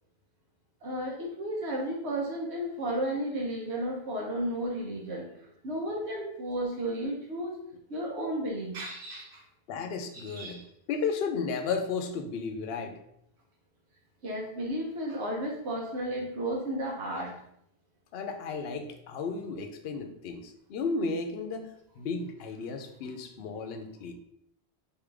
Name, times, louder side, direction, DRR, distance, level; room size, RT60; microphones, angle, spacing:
voice 1, 0.8-5.3 5.6-7.6 7.9-9.4 10.1-10.6 14.2-17.3, right 1 dB, 85° right, -2 dB, 1.2 m, -33 dB
voice 2, 9.7-10.6 10.9-13.0 18.1-24.1, left 4 dB, 70° left, 6 dB, 0.8 m, -34 dB
4.3 x 3.7 x 3.3 m, 0.75 s
omnidirectional pair, 1.1 m